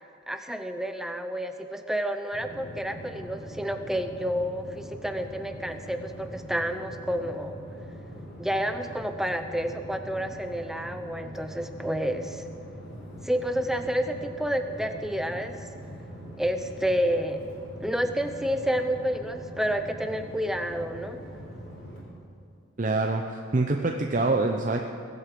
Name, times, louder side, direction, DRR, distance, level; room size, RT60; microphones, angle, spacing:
voice 1, 0.3-7.6 8.4-12.4 13.2-15.6 16.4-17.4 17.8-21.2, equal, ahead, 7 dB, 0.7 m, -29 dB
sound 1, 2.3-22.0, equal, 50° left, 3.9 m, -42 dB
voice 2, 22.8-24.8, right 2 dB, 40° right, 3 dB, 0.7 m, -25 dB
21.0 x 8.3 x 7.7 m, 2.5 s
head